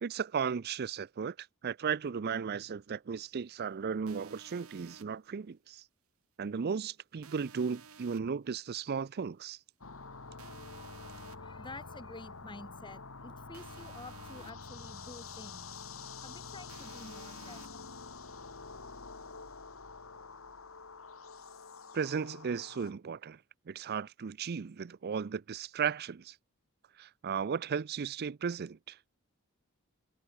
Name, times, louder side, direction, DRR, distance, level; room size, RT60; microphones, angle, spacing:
voice 1, 0.0-5.8 6.4-9.6 21.9-23.4 23.7-26.3 27.0-29.0, right 6 dB, 50° right, 0.4 m, -35 dB
sound 1, 4.1-5.0 7.2-8.2 10.4-11.4 13.5-14.5 16.7-17.7, right 6 dB, 80° right, 1.6 m, -54 dB
sound 2, 9.8-22.9, left 4 dB, 70° left, 2.1 m, -47 dB
voice 2, 11.1-15.7 16.2-17.9, left 2 dB, 20° left, 4.4 m, -50 dB
head